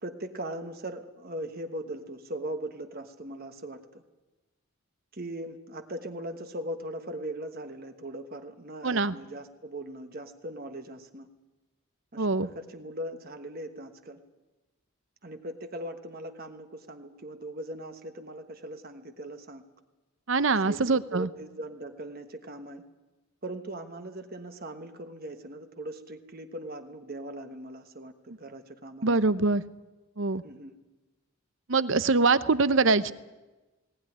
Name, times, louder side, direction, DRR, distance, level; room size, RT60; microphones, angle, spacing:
voice 1, 0.0-4.0 5.1-11.3 12.1-14.2 15.2-19.6 20.5-22.8 23.4-29.2 30.4-30.7, right 1 dB, 40° right, 6 dB, 1.2 m, -39 dB
voice 2, 8.8-9.1 12.2-12.5 20.3-21.3 29.0-29.6 30.2-30.4 31.7-33.1, right 3 dB, 55° right, 14 dB, 0.7 m, -24 dB
19.5 x 18.5 x 9.9 m, 1.1 s
head